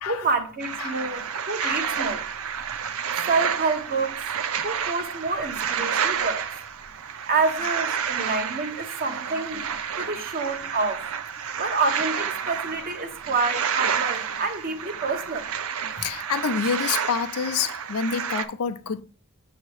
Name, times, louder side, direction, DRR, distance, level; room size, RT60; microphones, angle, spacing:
voice 1, 0.1-2.2 3.3-4.2 4.6-6.4 7.3-11.1 11.6-15.5 16.0-16.1, right 3 dB, 40° right, 0.9 m, -28 dB
sound 1, 0.6-18.5, right 7 dB, 65° right, 0.5 m, -30 dB
voice 2, 16.0-19.0, left 6 dB, 80° left, 0.5 m, -27 dB
7.1 x 2.9 x 4.7 m
head